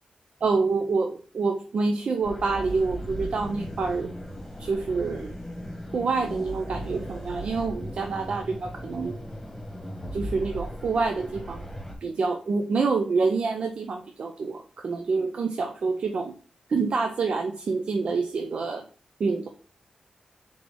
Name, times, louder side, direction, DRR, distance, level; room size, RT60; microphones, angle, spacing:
voice 1, 0.4-4.1 4.6-5.3 5.9-9.2 10.1-11.6 12.0-16.3 16.7-18.8 19.2-19.5, right 4 dB, 65° right, 4 dB, 0.5 m, -27 dB
sound 1, 2.2-12.0, equal, 10° left, 1.3 m, -37 dB
3.8 x 3.6 x 3.3 m, 0.40 s
wide cardioid pair, 105°, 2 cm